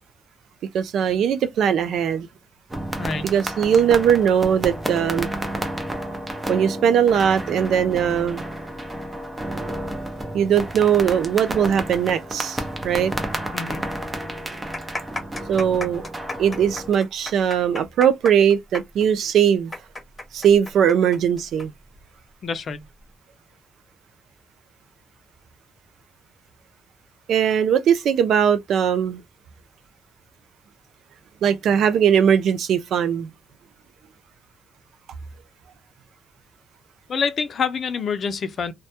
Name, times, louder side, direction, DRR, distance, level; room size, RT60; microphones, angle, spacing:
voice 1, 0.7-2.3 3.2-5.3 6.5-8.4 10.3-13.1 15.5-16.1 16.4-19.7 20.3-21.7 27.3-29.2 31.4-33.3, right 8 dB, 75° right, 0.3 m, -20 dB
sound 1, 2.7-17.0, right 1 dB, 20° right, 0.6 m, -31 dB
voice 2, 3.0-3.3 13.5-13.8 22.4-22.8 37.1-38.7, left 5 dB, 55° left, 0.4 m, -26 dB
sound 2, 14.4-21.7 21.9-22.0 22.8-23.1, left 2 dB, 20° left, 1.0 m, -34 dB
2.2 x 2.1 x 2.7 m
cardioid pair, 100°, 0 cm